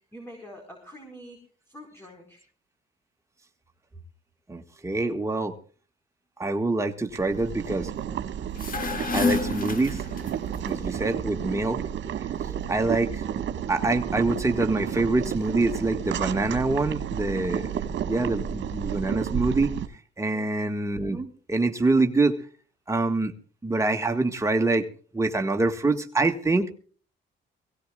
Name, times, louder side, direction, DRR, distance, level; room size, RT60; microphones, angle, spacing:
voice 1, 0.1-1.4 1.7-2.4, equal, 10° left, 1 dB, 4.9 m, -46 dB
voice 2, 4.5-5.6 6.4-7.9 9.1-10.0 10.6-11.8 12.7-13.4 13.7-19.8 20.2-22.4 22.9-23.3 23.6-24.9 25.1-26.7, right 2 dB, 15° right, 4 dB, 1.8 m, -25 dB
Boiling, 7.1-19.9, right 9 dB, 70° right, 1.7 m, -32 dB
sound 1, 8.4-10.6, left 4 dB, 45° left, 2.0 m, -29 dB
23.0 x 17.0 x 2.4 m, 0.41 s
cardioid pair, 90°, 20 cm